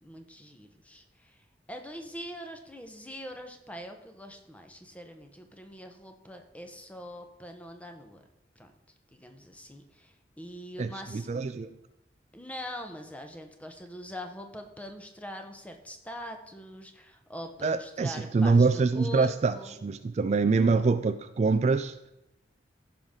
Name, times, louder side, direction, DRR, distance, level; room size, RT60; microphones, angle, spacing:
voice 1, 0.0-8.2 8.6-8.7 9.1-11.3 12.3-19.8, equal, 10° left, 5 dB, 0.9 m, -43 dB
voice 2, 10.8-11.8 17.6-19.5 19.8-21.9, right 4 dB, 40° right, 10 dB, 0.3 m, -25 dB
15.5 x 5.7 x 3.7 m, 0.89 s
head